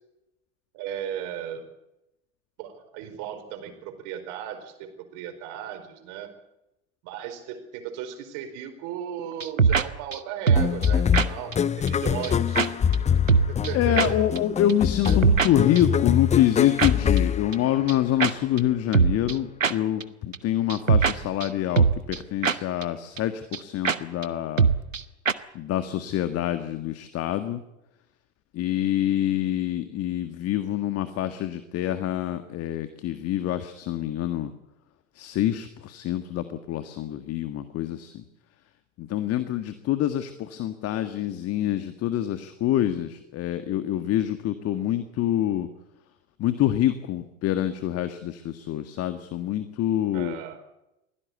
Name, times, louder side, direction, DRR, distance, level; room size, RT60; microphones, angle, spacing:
voice 1, 0.7-1.6 2.6-6.3 7.0-12.7 13.5-14.2 15.1-15.2 50.1-50.6, right 10 dB, 50° right, 7 dB, 4.7 m, -36 dB
sound 1, 9.4-9.8 10.1-10.2 10.5-10.9 11.1-11.3 11.5-11.6 11.9-12.0 12.2-12.3 12.6-12.7 12.9-13.0 13.3-13.7 14.0-14.1 14.4-14.5 14.7-14.8 15.0-15.5 15.8-15.9 16.8-16.9 17.2-17.3 17.5-17.6 17.9-18.0 18.2-18.3 18.6-18.7 18.9-19.3 19.6-19.7 20.0-20.1 20.3-20.4 20.7-21.1 21.4-21.5 21.8-22.2 22.4-22.6 22.8-22.9 23.2-23.3 23.5-23.6 23.8-24.0 24.2-24.3 24.6-25.0 25.3-25.4, right 6 dB, 90° right, 1.0 m, -21 dB
sound 2, 10.6-18.2, left 8 dB, 20° left, 0.8 m, -24 dB
voice 2, 13.7-24.7 25.5-27.6 28.5-34.5 35.2-38.2 39.0-45.7 46.4-50.4, left 12 dB, 40° left, 10 dB, 1.8 m, -26 dB
23.5 x 16.5 x 8.2 m, 0.89 s
figure-of-eight pair, 75°, 38 cm